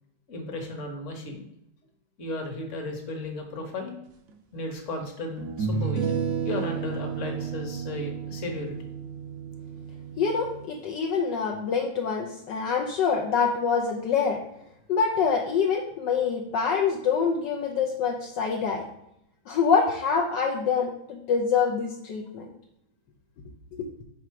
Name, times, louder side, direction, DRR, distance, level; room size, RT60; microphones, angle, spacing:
voice 1, 0.3-1.4 2.2-3.9 4.5-8.7, left 2 dB, 45° left, 2 dB, 1.4 m, -35 dB
sound 1, 4.3-4.4 5.4-10.6, right 6 dB, 60° right, 0.9 m, -32 dB
voice 2, 10.2-14.4 14.9-18.8 19.5-22.5 23.7-24.0, left 6 dB, 70° left, 0 dB, 1.3 m, -25 dB
5.9 x 5.0 x 4.6 m, 0.79 s
omnidirectional pair, 2.1 m